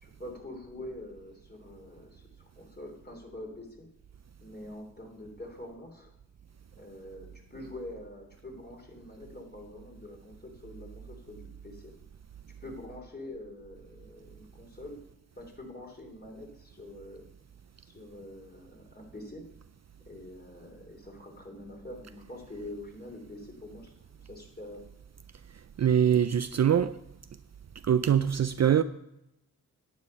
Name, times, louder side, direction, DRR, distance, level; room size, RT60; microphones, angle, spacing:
voice 1, 0.0-3.9 4.4-6.1 6.8-11.9 12.6-15.0 15.4-17.3 17.8-19.4 20.1-24.8, left 1 dB, 25° left, 3.2 m, -45 dB
voice 2, 25.8-27.0 27.8-28.8, right 9 dB, 45° right, 0.4 m, -23 dB
10.5 x 8.9 x 5.4 m
cardioid pair, 60°, 37 cm